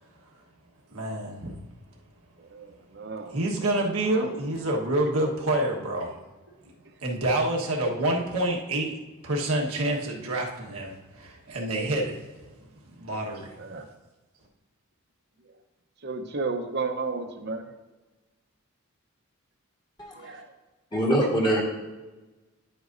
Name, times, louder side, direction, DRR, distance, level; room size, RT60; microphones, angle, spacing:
voice 1, 0.9-1.6 3.3-6.2 6.6-6.7 7.0-12.3 12.6-13.6, right 1 dB, 85° right, -1 dB, 1.4 m, -28 dB
voice 2, 2.4-3.4 13.6-13.9 15.4-15.6 16.0-17.7 20.1-20.5, right 4 dB, 50° right, 5 dB, 0.9 m, -33 dB
voice 3, 20.9-21.6, right 1 dB, 20° left, -1 dB, 1.5 m, -23 dB
10.5 x 8.0 x 2.6 m, 1.2 s
head